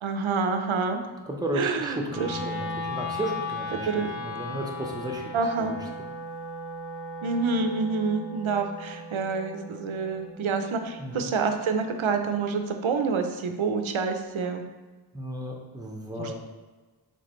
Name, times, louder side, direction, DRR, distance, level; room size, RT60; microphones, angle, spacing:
voice 1, 0.0-1.0 1.5-2.4 3.9-4.1 5.3-5.8 7.2-14.6 16.2-16.4, right 4 dB, 80° right, 6 dB, 0.6 m, -27 dB
voice 2, 1.3-5.3 5.6-5.8 11.0-11.3 15.1-16.4, right 1 dB, 10° right, 0 dB, 0.7 m, -34 dB
Wind instrument woodwind instrument, 2.1-12.2, left 2 dB, 60° left, 0.9 m, -37 dB
4.9 x 3.3 x 3.1 m, 1.3 s
wide cardioid pair, 65°, 47 cm